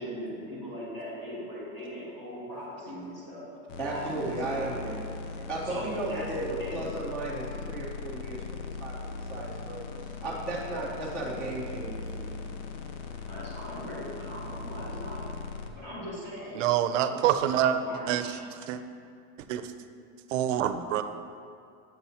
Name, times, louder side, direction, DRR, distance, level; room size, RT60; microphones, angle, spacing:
voice 1, 0.0-3.5 3.8-5.0 5.6-6.8 13.3-15.2 15.7-16.6 17.0-18.3, equal, 30° left, -8 dB, 1.6 m, -40 dB
sound 1, 3.7-15.7, left 4 dB, 90° left, 0.7 m, -39 dB
voice 2, 3.8-5.0 5.5-6.5 6.7-9.8 10.2-12.4, right 2 dB, 5° left, -10 dB, 0.4 m, -35 dB
voice 3, 16.5-18.8 19.5-19.7 20.3-21.0, right 10 dB, 85° right, 9 dB, 0.5 m, -27 dB
7.8 x 7.0 x 2.8 m, 2.4 s
supercardioid pair, 165°, 37 cm